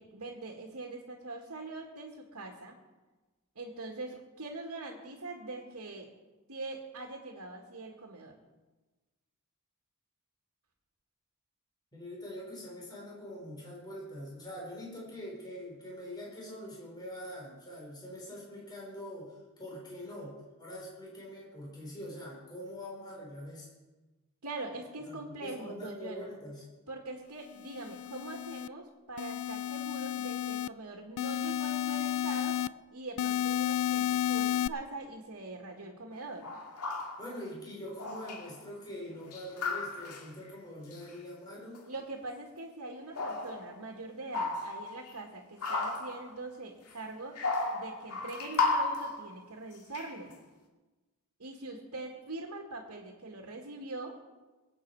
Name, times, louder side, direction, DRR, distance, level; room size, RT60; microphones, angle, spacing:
voice 1, 0.0-2.8 3.6-6.1 6.5-8.4 24.4-26.2 26.9-32.6 32.9-36.5 41.9-47.4 47.7-50.3 51.4-54.2, right 2 dB, 85° right, 0 dB, 2.0 m, -43 dB
voice 2, 11.9-23.7 25.0-26.6 37.2-41.9, equal, 20° left, -4 dB, 4.8 m, -44 dB
sound 1, 27.6-28.7 29.2-30.7 31.2-32.7 33.2-34.7, left 10 dB, 70° left, 0.3 m, -32 dB
sound 2, 36.1-36.2 36.4-37.3 38.0-38.6 39.1-40.3 40.9-41.1 41.7-41.9 43.2-43.9 44.3-45.1 45.6-46.3 46.9-47.0 47.4-49.3 49.9-50.3, left 3 dB, 85° left, 2.1 m, -34 dB
22.5 x 8.7 x 4.8 m, 1.2 s
head